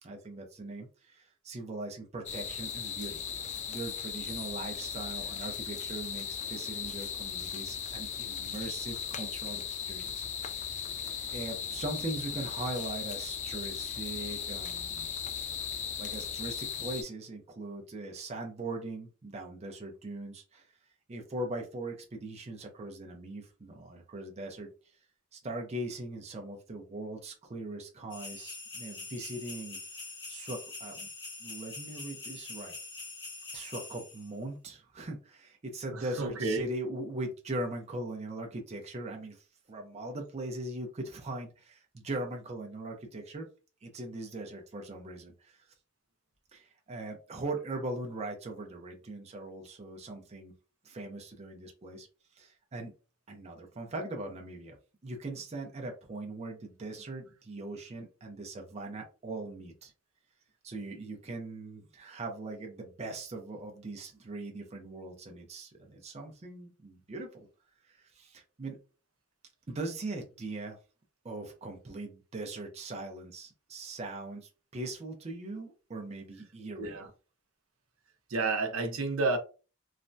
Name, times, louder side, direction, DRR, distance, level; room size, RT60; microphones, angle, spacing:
voice 1, 0.0-3.2 3.7-10.3 10.6-15.1 16.0-20.7 21.1-24.7 25.3-29.8 30.3-31.1 31.4-32.7 33.5-43.5 43.8-45.7 46.5-50.5 50.8-52.1 52.4-52.9 53.3-54.8 55.0-59.9 60.6-67.5 67.8-68.8 69.7-70.8 71.2-77.0, right 2 dB, 30° right, 0.5 m, -40 dB
sound 1, 2.3-17.0, left 7 dB, 35° left, 0.3 m, -37 dB
sound 2, 28.1-34.3, left 3 dB, 55° left, 1.2 m, -44 dB
voice 2, 36.2-36.6 76.8-77.1 78.3-79.4, right 3 dB, 75° right, 0.6 m, -30 dB
3.2 x 2.1 x 2.6 m
head